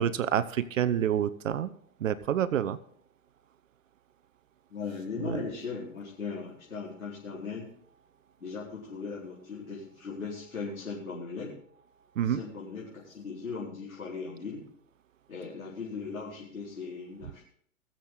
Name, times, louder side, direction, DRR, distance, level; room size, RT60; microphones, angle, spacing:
voice 1, 0.0-1.7 2.0-2.8 5.2-5.4 12.2-12.4, right 9 dB, 65° right, 15 dB, 0.8 m, -28 dB
voice 2, 4.7-7.7 8.4-11.5 12.2-14.7 15.3-17.4, left 4 dB, 90° left, -7 dB, 4.7 m, -38 dB
21.5 x 7.5 x 4.0 m, 0.63 s
hypercardioid pair, 125°, 41 cm